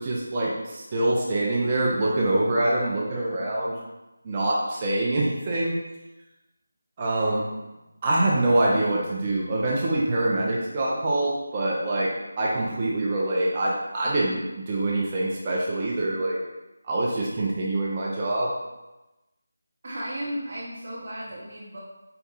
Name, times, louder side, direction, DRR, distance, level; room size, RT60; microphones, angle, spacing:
voice 1, 0.0-3.8 4.2-5.8 7.0-7.5 8.0-12.1 12.4-16.4 16.8-18.5, right 1 dB, 25° right, -5 dB, 0.6 m, -25 dB
voice 2, 19.8-21.8, equal, 45° right, -7 dB, 0.9 m, -34 dB
4.7 x 2.3 x 4.0 m, 1.0 s
figure-of-eight pair, 165°, 0 cm